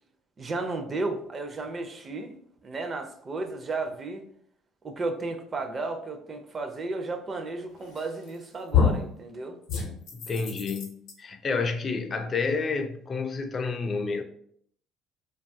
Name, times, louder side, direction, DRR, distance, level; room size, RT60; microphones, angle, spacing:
voice 1, 0.4-2.4 2.6-4.2 4.8-9.6, right 3 dB, 35° right, 0.4 m, -33 dB
sound 1, 8.0-8.4 8.7-9.1 9.7-11.1, left 6 dB, 75° left, 0.6 m, -26 dB
voice 2, 10.1-14.2, left 4 dB, 35° left, 0.3 m, -30 dB
2.7 x 2.3 x 2.6 m
cardioid pair, 100°, 0 cm